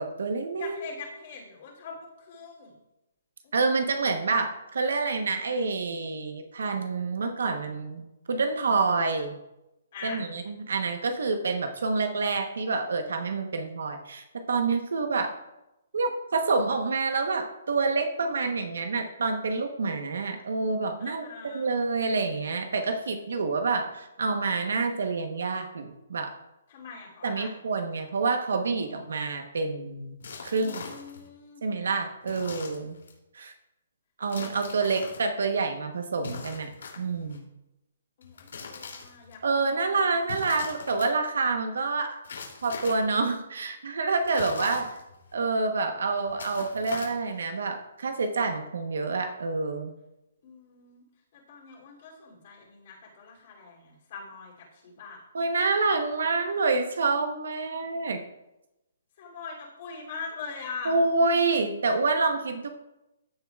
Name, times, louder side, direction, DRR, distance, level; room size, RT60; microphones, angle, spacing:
voice 1, 0.0-0.8 3.5-8.0 8.3-9.4 10.0-15.3 15.9-26.3 27.2-30.2 30.4-30.8 31.6-33.0 33.3-33.5 34.2-37.5 39.4-42.2 42.6-44.9 45.3-49.9 55.3-58.2 60.8-62.7, right 3 dB, 75° right, 6 dB, 1.0 m, -27 dB
voice 2, 0.6-2.8 3.4-4.1 9.9-10.2 21.0-21.8 26.7-27.6 30.5-31.6 38.2-39.6 50.4-51.0 51.3-55.2 59.2-61.0, left 5 dB, 40° left, -3 dB, 2.9 m, -42 dB
sound 1, 30.2-31.3 32.2-33.2 34.3-35.2 36.2-37.4 38.2-39.3 40.2-41.1 42.2-43.1 44.2-45.3 46.2-47.4, left 5 dB, 80° left, 2.7 m, -41 dB
15.0 x 7.1 x 2.4 m, 0.92 s
hypercardioid pair, 170°, 0 cm